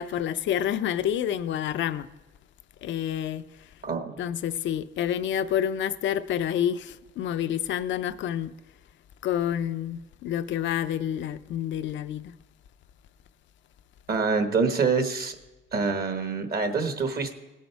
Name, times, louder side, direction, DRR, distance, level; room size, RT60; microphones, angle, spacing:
voice 1, 0.0-2.1 2.8-3.4 4.2-8.5 9.2-12.3, left 10 dB, 70° left, 0.5 m, -28 dB
voice 2, 3.8-4.2 14.1-15.4 15.7-17.3, right 4 dB, 50° right, 1.3 m, -26 dB
17.5 x 6.4 x 4.6 m
cardioid pair, 90°, 20 cm